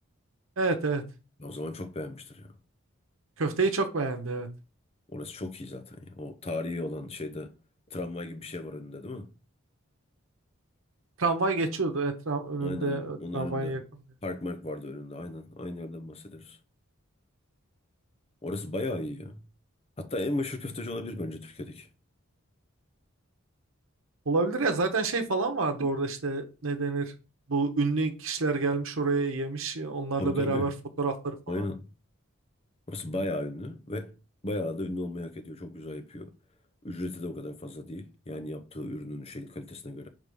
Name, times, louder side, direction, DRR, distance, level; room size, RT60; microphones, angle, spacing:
voice 1, 0.6-1.0 3.4-4.5 11.2-13.8 24.3-27.1 27.5-30.7 31.0-31.3, right 3 dB, 75° right, 0.9 m, -28 dB
voice 2, 1.4-2.5 5.1-7.5 7.9-9.3 12.6-13.8 14.2-16.6 18.4-19.4 20.0-21.9 30.2-30.7 31.5-31.9 32.9-34.1 34.4-36.3 36.8-40.1, left 2 dB, 30° left, 0.7 m, -36 dB
4.9 x 3.6 x 5.3 m
head